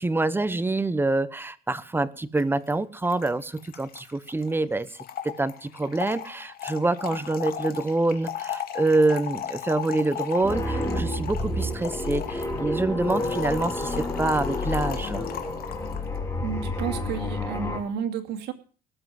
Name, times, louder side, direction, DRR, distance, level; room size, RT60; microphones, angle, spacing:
voice 1, 0.0-4.9 5.2-15.3, right 2 dB, 15° right, 15 dB, 1.0 m, -26 dB
Trickle dribble / Fill (with liquid), 2.4-2.5 2.7-2.8 3.0-16.1, left 10 dB, 60° left, 2.6 m, -37 dB
sound 1, 10.4-17.8, left 2 dB, 15° left, 5.4 m, -29 dB
voice 2, 16.4-18.5, right 8 dB, 75° right, 5 dB, 2.5 m, -31 dB
18.0 x 7.7 x 7.6 m, 0.40 s
cardioid pair, 110°, 17 cm